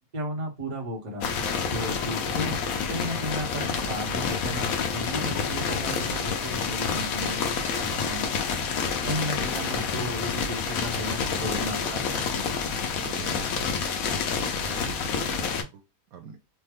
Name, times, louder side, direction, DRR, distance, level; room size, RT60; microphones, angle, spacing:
voice 1, 0.1-1.3 1.7-2.6 2.9-8.3 9.0-12.5, equal, 35° right, 1.0 m, -34 dB
sound 1, 1.2-15.6, left 5 dB, 80° left, 1.1 m, -28 dB
voice 2, 13.0-13.6 14.4-15.4 15.7-15.8 16.1-16.4, right 7 dB, 90° right, 1.2 m, -44 dB
3.3 x 2.1 x 3.4 m
omnidirectional pair, 1.5 m